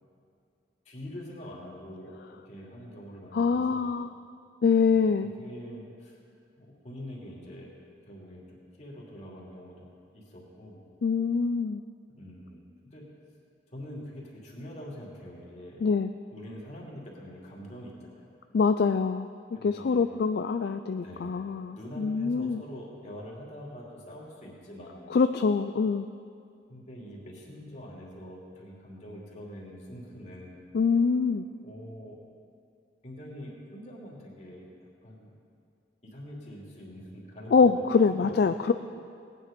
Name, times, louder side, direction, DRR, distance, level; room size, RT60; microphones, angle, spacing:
voice 1, 0.8-2.1 2.4-3.8 4.9-5.1 5.4-6.2 6.6-7.7 8.0-9.9 10.1-10.8 12.2-12.6 12.9-13.0 13.7-15.8 16.3-18.2 19.5-20.1 20.9-21.4 21.8-25.2 26.7-30.6 31.6-32.2 33.0-34.7 35.0-35.3 36.1-38.6, equal, 40° left, -3 dB, 2.7 m, -44 dB
voice 2, 3.3-4.1 4.6-5.3 11.0-11.8 15.8-16.1 18.5-19.3 19.6-22.6 25.1-26.1 30.7-31.5 37.5-38.7, left 5 dB, 60° left, 9 dB, 0.3 m, -24 dB
18.0 x 9.8 x 5.2 m, 2.4 s
head